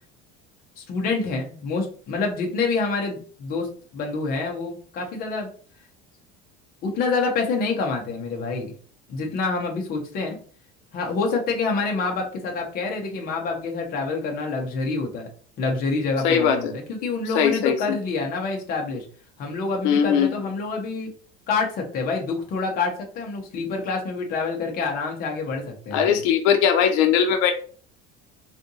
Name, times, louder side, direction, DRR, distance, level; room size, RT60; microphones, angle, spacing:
voice 1, 0.8-5.5 6.8-8.7 9.1-10.4 10.9-15.3 15.6-19.1 19.4-21.1 21.5-26.2, left 4 dB, 30° left, 2 dB, 0.7 m, -27 dB
voice 2, 16.2-16.7 17.3-18.0 19.8-20.5 25.9-27.5, left 8 dB, 70° left, 5 dB, 0.5 m, -20 dB
3.6 x 2.5 x 2.7 m, 0.43 s
cardioid pair, 175°, 29 cm